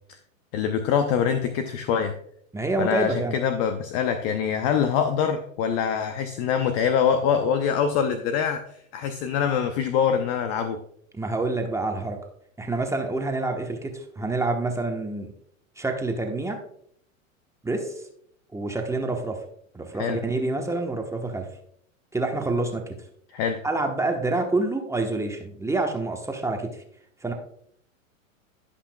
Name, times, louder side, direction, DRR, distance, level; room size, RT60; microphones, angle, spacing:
voice 1, 0.5-2.1 2.8-10.8 20.0-20.2 23.3-23.6, left 7 dB, 45° left, 7 dB, 0.8 m, -24 dB
voice 2, 2.5-3.4 11.1-12.2 12.6-15.3 15.8-16.6 17.6-18.0 18.5-19.4 19.7-21.5 22.1-22.8 23.6-26.8 27.2-27.3, right 2 dB, 5° right, 3 dB, 1.1 m, -27 dB
16.0 x 5.7 x 2.3 m, 0.68 s
hypercardioid pair, 105°, 40 cm